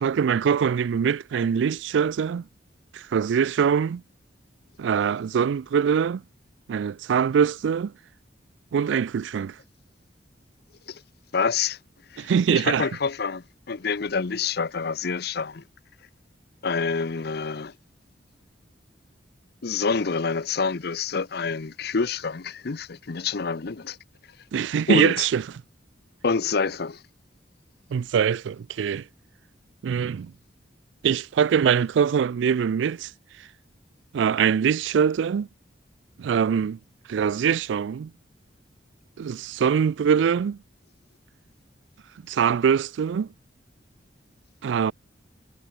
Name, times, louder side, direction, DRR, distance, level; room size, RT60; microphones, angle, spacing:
voice 1, 0.0-2.4 2.9-4.0 4.8-6.2 6.7-7.9 8.7-9.6 12.2-12.9 24.5-25.4 27.9-29.0 29.8-30.3 31.0-33.1 34.1-35.5 36.2-36.8 37.1-38.1 39.2-40.6 42.3-43.3 44.6-44.9, right 7 dB, 75° right, 0.3 m, -23 dB
voice 2, 11.3-11.8 12.1-15.6 16.6-17.7 19.6-24.0 24.9-25.1 26.2-27.0, left 5 dB, 60° left, 0.7 m, -27 dB
head